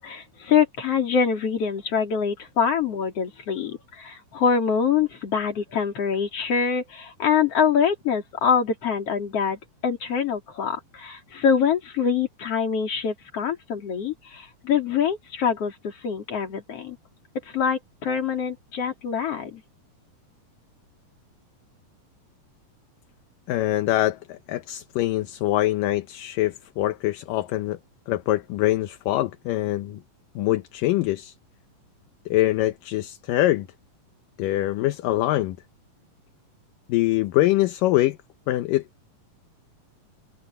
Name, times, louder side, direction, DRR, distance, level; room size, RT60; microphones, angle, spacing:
voice 1, 0.0-17.0 17.5-19.6, left 6 dB, 45° left, 4.1 m, -25 dB
voice 2, 23.5-27.8 28.1-30.0 30.4-31.3 32.3-33.7 34.4-35.6 36.9-38.2 38.5-38.8, left 15 dB, 75° left, 2.4 m, -24 dB
omnidirectional pair, 4.1 m